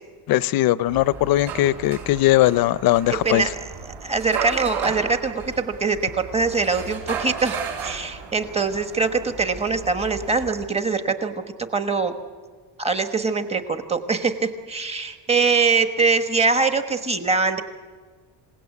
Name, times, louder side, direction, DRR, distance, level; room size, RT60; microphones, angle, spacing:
voice 1, 0.3-3.5, left 15 dB, 55° left, 19 dB, 0.6 m, -19 dB
sound 1, 0.9-10.7, right 6 dB, 65° right, 7.5 m, -34 dB
voice 2, 4.0-11.3 11.7-12.1 12.8-17.6, right 4 dB, 15° right, 8 dB, 1.2 m, -23 dB
27.0 x 17.5 x 8.3 m, 1.5 s
cardioid pair, 160°, 44 cm